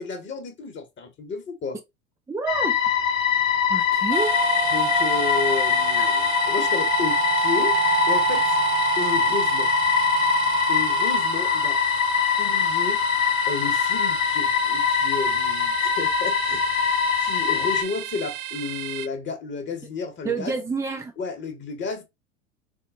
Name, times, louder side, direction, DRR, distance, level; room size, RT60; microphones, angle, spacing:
voice 1, 0.0-1.8 4.6-7.8 8.1-8.6 9.0-9.7 10.7-11.8 12.4-13.0 13.5-20.6 21.2-22.0, left 4 dB, 30° left, 1.2 m, -32 dB
voice 2, 2.3-2.7 3.7-4.3 6.0-6.1 20.2-21.1, right 4 dB, 10° right, 0.7 m, -28 dB
sound 1, 2.5-17.8, left 7 dB, 80° left, 0.8 m, -23 dB
sound 2, 4.1-19.1, right 10 dB, 55° right, 0.5 m, -29 dB
4.6 x 2.1 x 3.6 m
hypercardioid pair, 85°, 39 cm